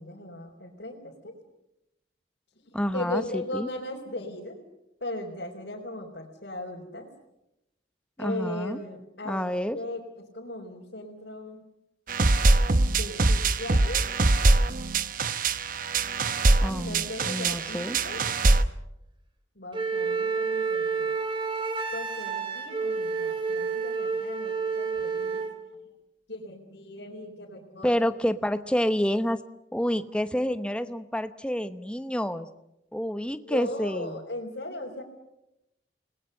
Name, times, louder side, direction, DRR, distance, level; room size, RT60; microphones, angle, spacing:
voice 1, 0.0-1.4 2.9-4.6 5.0-7.1 8.2-10.0 10.3-11.6 12.9-14.0 16.8-18.2 19.6-21.1 21.9-25.5 26.3-28.1 33.4-35.0, left 1 dB, 60° left, -3 dB, 4.1 m, -37 dB
voice 2, 2.7-3.7 8.2-8.8 9.2-9.8 16.6-18.0 27.8-29.4 29.7-32.5 32.9-34.2, equal, 5° left, 10 dB, 1.0 m, -28 dB
sound 1, 12.1-18.6, right 2 dB, 45° right, 0.9 m, -23 dB
Wind instrument woodwind instrument, 19.7-25.6, right 5 dB, 25° right, 3.2 m, -29 dB
29.5 x 20.5 x 6.7 m, 0.87 s
head